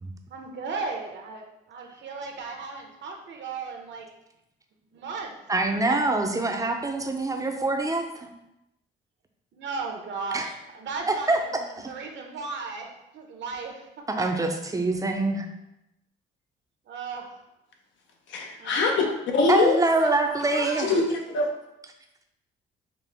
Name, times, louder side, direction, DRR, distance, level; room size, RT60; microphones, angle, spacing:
voice 1, 0.3-4.1 4.9-5.3 9.5-11.6 11.9-12.9 13.1-13.8 16.9-17.3 18.6-19.1 19.9-20.1 20.5-21.0, right 4 dB, 65° right, 2 dB, 0.8 m, -36 dB
voice 2, 5.5-8.3 10.3-10.5 11.1-11.4 11.8-11.9 14.1-15.5 19.5-20.9, right 2 dB, 15° right, 4 dB, 0.5 m, -25 dB
voice 3, 18.3-19.1 19.3-19.8 20.8-21.5, left 4 dB, 70° left, 2 dB, 0.7 m, -23 dB
5.2 x 2.0 x 3.4 m, 0.89 s
cardioid pair, 90°, 20 cm